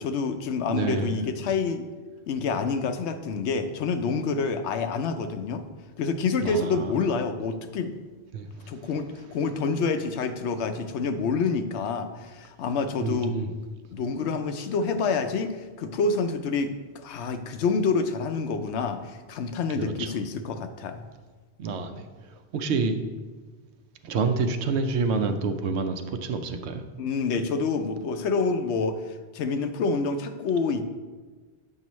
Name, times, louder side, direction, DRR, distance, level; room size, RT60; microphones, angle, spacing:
voice 1, 0.0-1.9 2.3-5.6 6.0-7.9 8.7-13.4 13.9-21.0 27.0-29.0 29.3-30.8, left 4 dB, 90° left, 8 dB, 0.9 m, -27 dB
voice 2, 0.7-1.2 6.4-6.9 8.3-8.9 13.0-13.5 19.7-20.1 21.6-23.0 24.0-26.8, right 4 dB, 85° right, 8 dB, 0.9 m, -28 dB
7.7 x 5.6 x 3.1 m, 1.4 s
omnidirectional pair, 1.1 m